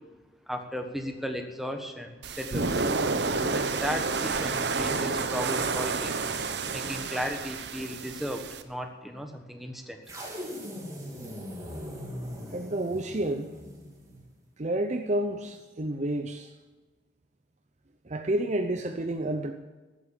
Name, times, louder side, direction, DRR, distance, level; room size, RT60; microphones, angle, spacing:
voice 1, 0.5-2.8 3.4-6.2 6.7-10.0, equal, ahead, 1.3 m, -35 dB
sound 1, 2.2-8.6, right 4 dB, 65° right, 0.9 m, -30 dB
sound 2, 10.1-14.3, equal, 20° right, 2.8 m, -40 dB
voice 2, 12.5-13.5 14.6-16.5 18.0-19.5, right 1 dB, 40° right, 0.7 m, -30 dB
13.5 x 9.2 x 8.8 m
head